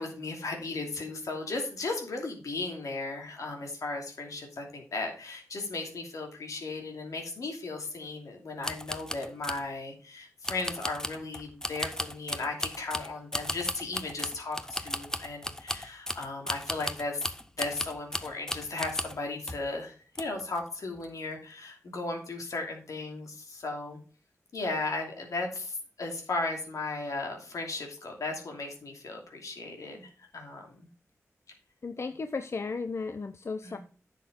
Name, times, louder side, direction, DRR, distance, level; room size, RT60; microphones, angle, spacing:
voice 1, 0.0-17.3 17.5-24.0 24.5-30.9 33.6-33.8, left 3 dB, 80° left, 2 dB, 2.6 m, -36 dB
sound 1, 8.6-9.7 10.4-19.2 19.5-19.7 20.1-20.6 20.9-21.1, left 1 dB, 10° left, 0.9 m, -36 dB
voice 2, 31.8-33.8, left 4 dB, 55° left, 9 dB, 0.7 m, -35 dB
9.9 x 6.6 x 3.7 m, 0.40 s
cardioid pair, 50°, 6 cm